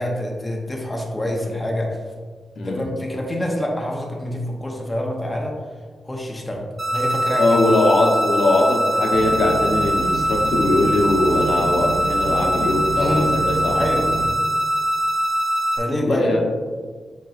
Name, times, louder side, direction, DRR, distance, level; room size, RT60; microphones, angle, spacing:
voice 1, 0.0-2.0 2.6-5.6 6.0-6.6 6.9-7.6 12.9-13.3 13.7-14.1 15.8-16.4, left 1 dB, 15° left, -1 dB, 0.6 m, -26 dB
sound 1, 6.8-15.8, right 1 dB, 25° right, 0.7 m, -22 dB
voice 2, 7.4-13.8 16.0-16.4, left 2 dB, 80° left, -1 dB, 0.8 m, -20 dB
sound 2, 9.1-14.3, right 2 dB, 85° right, 0.4 m, -30 dB
7.5 x 3.0 x 2.4 m, 1.5 s
wide cardioid pair, 140°, 0 cm